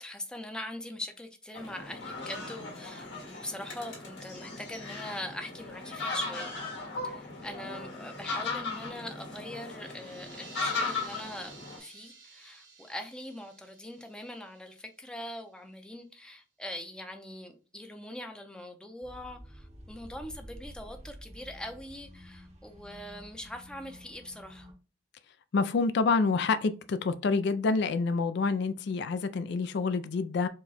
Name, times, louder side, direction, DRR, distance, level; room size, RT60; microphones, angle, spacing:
voice 1, 0.0-6.6 7.0-24.7, left 1 dB, 5° left, 0.6 m, -42 dB
sound 1, 1.5-11.8, left 3 dB, 85° left, 1.9 m, -37 dB
sound 2, 9.6-15.3, right 4 dB, 75° right, 1.7 m, -52 dB
sound 3, 19.0-24.7, equal, 35° right, 0.8 m, -50 dB
voice 2, 25.5-30.5, left 4 dB, 65° left, 0.4 m, -27 dB
4.7 x 2.2 x 4.0 m
head